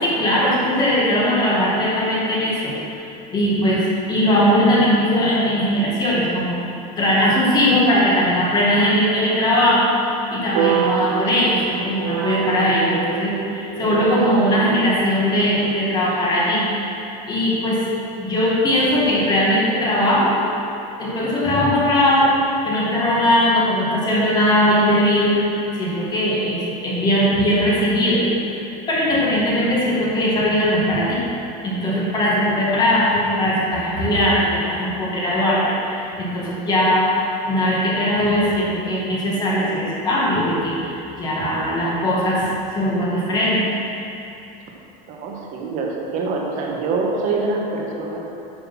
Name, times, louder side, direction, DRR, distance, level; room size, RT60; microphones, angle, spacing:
voice 1, 0.0-2.7 3.3-6.6 7.0-9.9 10.3-16.6 17.3-17.8 18.2-20.4 21.0-25.3 25.7-28.2 28.6-31.2 31.6-37.1 37.5-43.7, equal, 20° left, -6 dB, 2.0 m, -19 dB
sound 1, 10.5-14.9, right 10 dB, 90° right, 0.7 m, -26 dB
voice 2, 45.1-48.2, right 3 dB, 45° right, -1 dB, 1.5 m, -25 dB
9.0 x 6.5 x 6.0 m, 2.8 s
cardioid pair, 165°, 19 cm